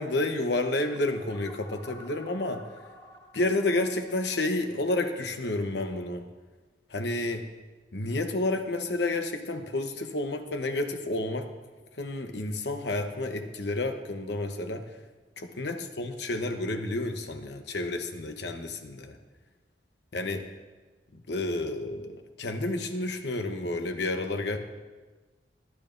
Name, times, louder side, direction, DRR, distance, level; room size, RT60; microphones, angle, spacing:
voice 1, 0.0-2.6 3.3-6.2 6.9-7.5 7.9-11.5 12.0-14.8 15.4-19.2 20.1-20.5 21.1-24.6, left 2 dB, 70° left, 6 dB, 1.0 m, -30 dB
sound 1, 0.8-5.6, left 1 dB, 25° left, 2.9 m, -51 dB
22.5 x 8.9 x 2.6 m, 1.3 s
head